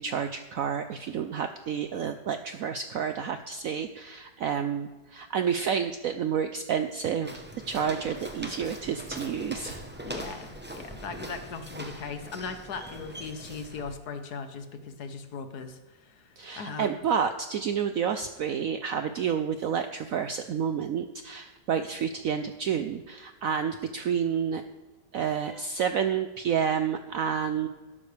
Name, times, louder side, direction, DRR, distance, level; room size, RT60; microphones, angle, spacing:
voice 1, 0.0-9.8 16.4-24.6 25.1-27.7, right 7 dB, 70° right, 9 dB, 0.8 m, -30 dB
Walk footsteps, 7.2-13.9, right 1 dB, 10° right, 0.5 m, -41 dB
voice 2, 10.1-17.0, left 5 dB, 60° left, 8 dB, 1.4 m, -39 dB
12.5 x 11.5 x 3.4 m, 1.2 s
omnidirectional pair, 2.0 m